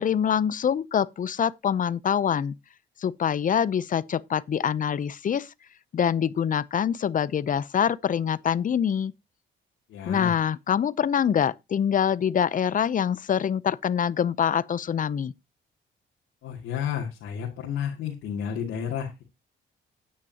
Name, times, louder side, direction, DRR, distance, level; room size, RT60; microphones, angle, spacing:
voice 1, 0.0-2.6 3.0-5.5 5.9-9.1 10.1-15.3, left 8 dB, 40° left, 0.6 m, -25 dB
voice 2, 9.9-10.3 16.4-19.2, left 8 dB, 80° left, 2.4 m, -31 dB
10.5 x 9.5 x 2.9 m
cardioid pair, 90°, 20 cm